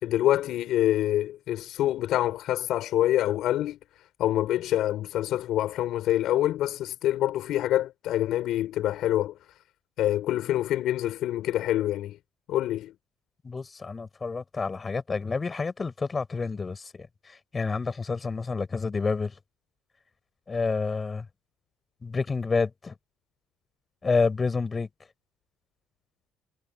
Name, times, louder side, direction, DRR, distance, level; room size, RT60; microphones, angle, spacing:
voice 1, 0.0-3.8 4.2-9.3 10.0-12.2 12.5-12.9, left 13 dB, 70° left, 6.4 m, -26 dB
voice 2, 13.4-19.3 20.5-21.3 22.0-22.9 24.0-24.9, left 4 dB, 25° left, 5.9 m, -29 dB
cardioid pair, 125°, 0 cm